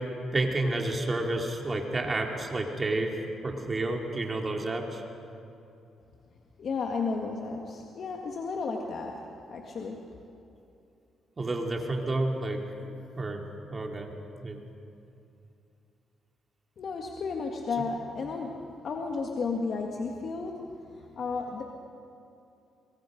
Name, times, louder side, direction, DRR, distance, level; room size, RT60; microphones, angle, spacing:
voice 1, 0.3-3.1 3.4-5.0 11.4-13.4 13.7-14.1 14.4-14.6, right 2 dB, 30° right, 1 dB, 3.0 m, -30 dB
voice 2, 6.6-10.1 16.8-21.6, left 4 dB, 55° left, 1 dB, 1.8 m, -33 dB
23.5 x 23.0 x 5.3 m, 2.7 s
cardioid pair, 90°, 0 cm